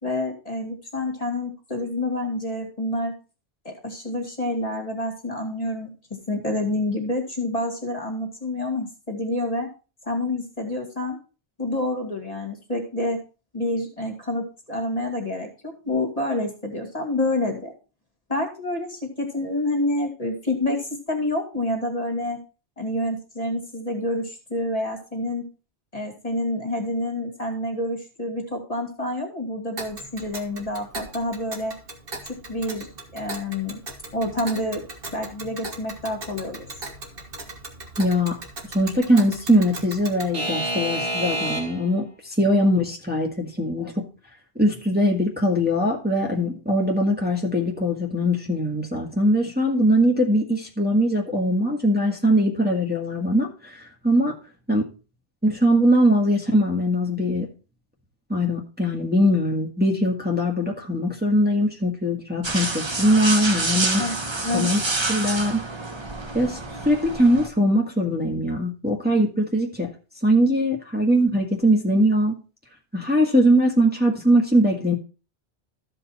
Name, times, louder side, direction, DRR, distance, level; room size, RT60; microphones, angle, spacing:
voice 1, 0.0-3.1 3.6-5.9 6.3-9.7 10.0-11.2 11.6-13.2 13.5-17.7 18.3-22.4 22.8-25.4 25.9-31.7 32.5-32.9 33.1-33.8 34.1-34.8 35.1-36.7 64.0-64.2 64.4-64.9, left 1 dB, 35° left, 2 dB, 2.3 m, -28 dB
Alarm / Clock, 29.8-41.9, right 1 dB, 60° right, 1.7 m, -34 dB
voice 2, 38.0-38.4 38.7-44.0 44.6-54.3 54.7-54.8 55.4-57.5 58.3-64.0 64.5-64.8 65.1-65.6 66.3-66.6 66.8-69.9 70.2-72.3 72.9-74.9, equal, 10° right, -1 dB, 1.7 m, -21 dB
sound 1, 62.4-67.5, right 2 dB, 25° right, 1.0 m, -27 dB
14.0 x 5.3 x 4.2 m, 0.34 s
omnidirectional pair, 1.1 m